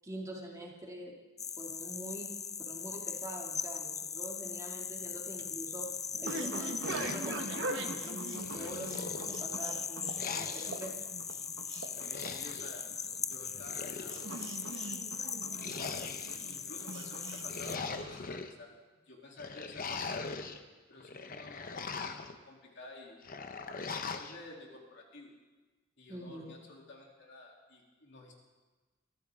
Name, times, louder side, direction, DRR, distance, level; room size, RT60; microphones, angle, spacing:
voice 1, 0.0-1.1 1.6-2.3 2.7-5.9 6.2-10.9 26.1-26.5, right 1 dB, 15° right, -2 dB, 2.5 m, -44 dB
sound 1, 1.4-17.8, left 6 dB, 15° left, 0.4 m, -40 dB
sound 2, 4.9-18.5, right 2 dB, 65° right, 1.2 m, -43 dB
sound 3, 6.8-8.0 8.4-9.6 10.2-10.9 11.9-12.7 13.5-14.5 15.5-16.5 17.3-18.5 19.4-20.6 21.0-22.4 23.2-24.4, left 4 dB, 45° left, 0.9 m, -41 dB
voice 2, 11.7-12.9 13.2-14.8 15.7-20.5 20.9-22.2 22.4-23.2 23.8-25.3 26.0-28.3, left 2 dB, 60° left, -1 dB, 3.2 m, -52 dB
23.5 x 14.5 x 3.7 m, 1.2 s
head